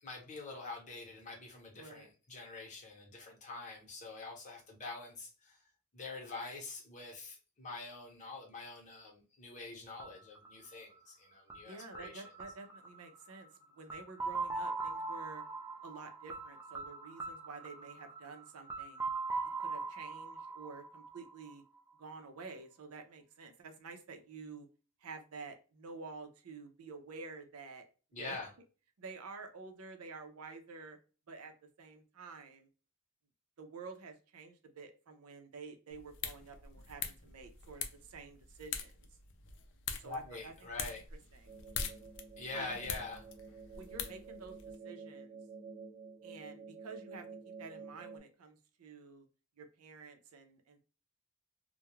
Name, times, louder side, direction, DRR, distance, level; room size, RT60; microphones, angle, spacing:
voice 1, 0.0-5.6 5.9-12.2 28.1-28.5 40.0-41.0 42.4-43.2, left 3 dB, 35° left, 0 dB, 0.8 m, -45 dB
voice 2, 1.7-2.1 11.6-13.5 13.8-15.4 15.8-19.0 19.6-21.6 22.0-24.7 25.0-27.8 28.2-28.4 29.0-31.0 31.3-31.5 31.8-32.7 33.6-39.1 39.9-40.5 41.3-41.5 42.5-42.9 43.8-44.6 44.8-45.4 46.2-49.3 49.6-50.8, right 4 dB, 80° right, 6 dB, 0.6 m, -50 dB
sound 1, 10.0-21.8, right 3 dB, 10° right, 0.3 m, -42 dB
sound 2, 35.9-44.8, left 6 dB, 55° left, 0.4 m, -44 dB
sound 3, 41.5-48.2, right 5 dB, 40° right, 1.0 m, -50 dB
2.3 x 2.1 x 2.9 m, 0.35 s
head